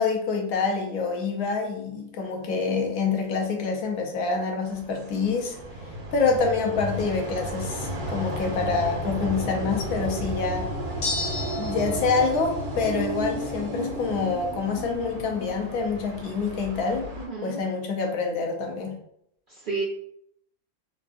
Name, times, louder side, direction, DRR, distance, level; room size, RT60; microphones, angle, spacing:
voice 1, 0.0-5.6 6.1-10.7 11.6-17.1 17.4-19.0, left 4 dB, 80° left, 2 dB, 1.1 m, -26 dB
sound 1, 4.7-17.3, equal, 85° right, 1.3 m, -33 dB
sound 2, 11.0-12.0, left 2 dB, 60° left, 0.9 m, -30 dB
voice 2, 17.1-17.6 19.5-19.8, right 4 dB, 60° right, -5 dB, 0.5 m, -31 dB
3.5 x 2.4 x 2.4 m, 0.72 s
omnidirectional pair, 1.6 m